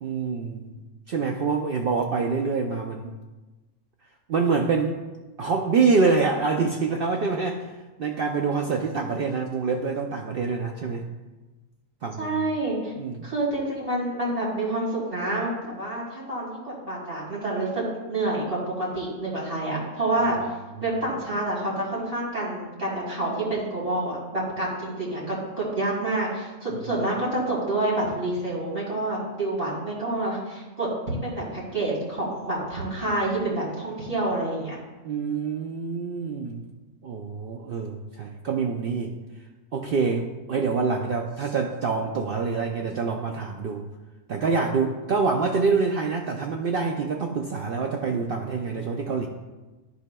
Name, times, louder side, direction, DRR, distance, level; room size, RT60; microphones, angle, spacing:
voice 1, 0.0-0.7 1.1-3.1 4.3-5.0 5.4-7.7 8.0-11.1 12.0-12.4 13.0-13.3 20.8-20.9 35.0-36.6 37.0-39.1 39.7-43.9 44.3-49.3, right 4 dB, 70° right, 2 dB, 0.5 m, -26 dB
voice 2, 12.2-12.9 13.2-17.8 18.1-20.4 20.8-34.8, right 2 dB, 25° right, -6 dB, 2.5 m, -28 dB
14.0 x 4.7 x 2.2 m, 1.2 s
omnidirectional pair, 1.5 m